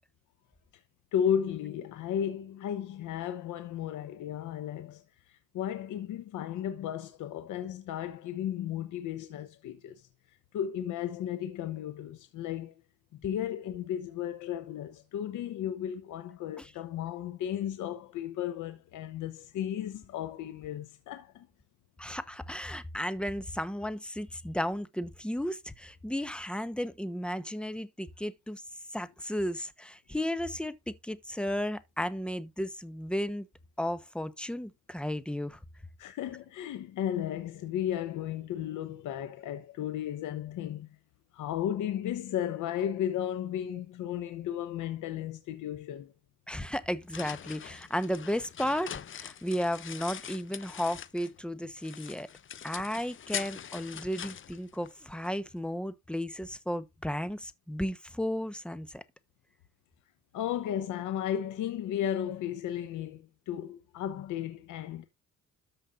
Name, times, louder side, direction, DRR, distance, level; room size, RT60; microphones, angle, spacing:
voice 1, 1.1-12.7 13.1-21.5 36.0-41.0 41.3-46.1 60.3-65.0, left 10 dB, 85° left, 1.0 m, -34 dB
voice 2, 22.0-28.6 28.9-33.5 33.8-35.6 46.5-52.3 52.6-59.0, equal, 5° left, 1.1 m, -34 dB
sound 1, 46.7-51.4 51.8-55.3, left 9 dB, 40° left, 0.7 m, -42 dB
13.0 x 5.3 x 2.6 m
cardioid pair, 90°, 30 cm